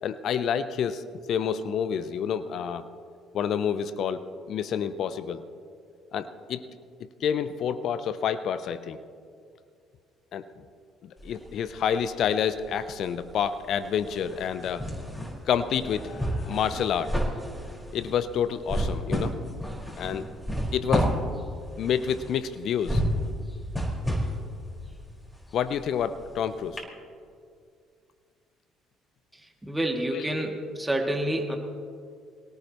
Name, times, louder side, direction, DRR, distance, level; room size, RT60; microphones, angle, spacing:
voice 1, 0.0-2.9 3.3-5.4 6.1-6.6 7.2-9.0 10.3-10.5 11.0-14.9 15.5-17.2 17.9-19.3 20.0-20.3 20.7-21.1 21.8-23.0 25.5-26.8 30.1-30.5, left 8 dB, 55° left, 13 dB, 0.7 m, -28 dB
sound 1, 11.2-12.3 12.6-26.4 26.8-26.9, equal, 10° left, 5.1 m, -31 dB
voice 2, 29.6-31.6, right 1 dB, 10° right, 2 dB, 2.5 m, -28 dB
25.0 x 18.0 x 3.1 m, 2.3 s
hypercardioid pair, 50°, 0 cm